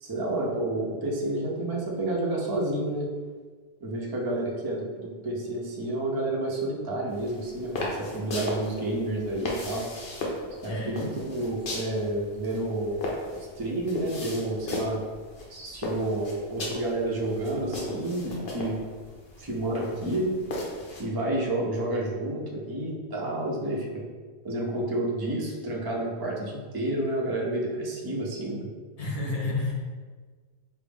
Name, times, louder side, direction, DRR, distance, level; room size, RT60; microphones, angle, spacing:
voice 1, 0.0-3.1 3.8-9.9 10.6-13.0 13.6-15.0 15.5-18.8 19.4-20.4 21.0-23.9 24.4-28.7, right 1 dB, 30° right, -3 dB, 0.5 m, -30 dB
sound 1, 7.1-21.0, left 2 dB, 70° left, 1.0 m, -37 dB
voice 2, 10.6-11.0 29.0-29.7, left 2 dB, 40° left, -4 dB, 0.8 m, -30 dB
5.0 x 2.0 x 3.4 m, 1.5 s
omnidirectional pair, 1.1 m